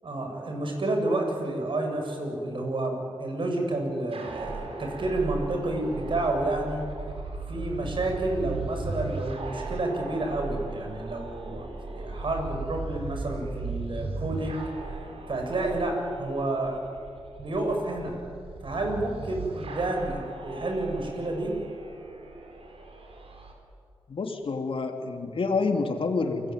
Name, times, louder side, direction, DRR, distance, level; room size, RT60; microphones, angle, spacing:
voice 1, 0.0-6.8 7.5-14.7 15.3-16.8 17.4-18.1 18.6-21.6, right 2 dB, 55° right, 2 dB, 7.3 m, -30 dB
sound 1, 4.1-23.5, right 3 dB, 75° right, 4.7 m, -37 dB
voice 2, 24.1-26.5, left 4 dB, 65° left, 4 dB, 2.9 m, -28 dB
29.0 x 22.0 x 9.4 m, 2.4 s
wide cardioid pair, 95°, 10 cm